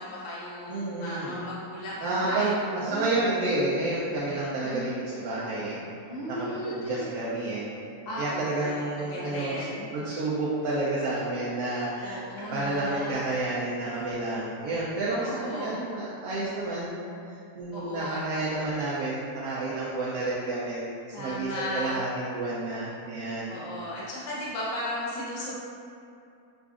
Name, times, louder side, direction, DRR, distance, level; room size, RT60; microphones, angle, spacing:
voice 1, 0.0-3.3 4.6-4.9 6.1-7.1 8.0-9.9 12.0-13.2 15.1-15.8 17.7-18.2 21.1-22.0 23.5-25.5, left 1 dB, 50° left, -7 dB, 0.5 m, -35 dB
voice 2, 0.7-1.4 2.0-5.8 6.3-7.7 8.2-9.6 9.9-16.9 17.3-20.9 21.2-23.6, right 2 dB, 70° right, -7 dB, 0.9 m, -30 dB
4.9 x 2.4 x 2.4 m, 2.5 s
omnidirectional pair, 1.7 m